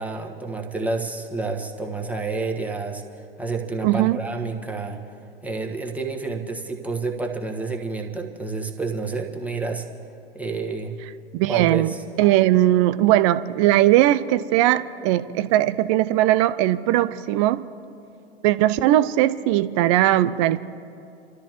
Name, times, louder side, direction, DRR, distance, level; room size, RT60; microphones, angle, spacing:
voice 1, 0.0-3.0 3.4-5.0 5.4-9.8 10.3-10.9 11.5-12.0, right 3 dB, 5° right, 1 dB, 1.4 m, -29 dB
voice 2, 3.8-4.2 11.3-17.6 18.4-20.6, right 14 dB, 30° right, 14 dB, 0.4 m, -19 dB
29.5 x 13.5 x 3.1 m, 2.5 s
figure-of-eight pair, 100°, 31 cm